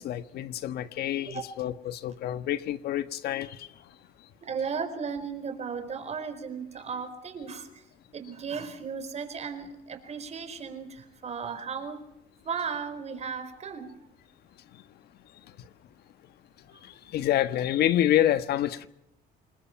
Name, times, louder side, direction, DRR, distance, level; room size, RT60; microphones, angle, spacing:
voice 1, 0.0-3.7 17.1-18.9, left 12 dB, 70° left, 1.4 m, -27 dB
voice 2, 4.4-7.8 8.1-12.0 12.4-13.9, right 6 dB, 40° right, 4.5 m, -35 dB
27.5 x 21.0 x 5.9 m
cardioid pair, 110°, 17 cm